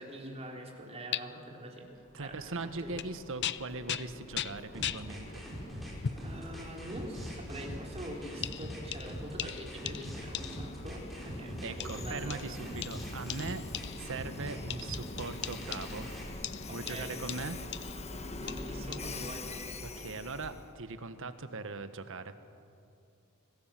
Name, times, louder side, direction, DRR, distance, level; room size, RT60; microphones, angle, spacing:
voice 1, 0.0-1.8 2.2-2.9 6.2-12.9 16.7-17.1 18.3-19.8, right 1 dB, 30° right, 0 dB, 3.7 m, -44 dB
sound 1, 1.1-1.2 2.9-3.1 3.4-5.1 6.0-6.3 7.1-7.3 8.4-10.8 11.8-14.2 14.7-16.1 16.4-18.1 18.5-19.0, left 10 dB, 50° left, 0.6 m, -39 dB
Train, 1.9-20.7, left 2 dB, 30° left, 1.3 m, -45 dB
voice 2, 2.1-5.4 11.6-13.6 13.9-16.1 16.7-17.6 19.8-22.4, right 3 dB, 60° right, 10 dB, 1.4 m, -40 dB
sound 2, 4.7-16.3, equal, ahead, 5.8 m, -43 dB
26.0 x 18.5 x 7.6 m, 2.5 s
head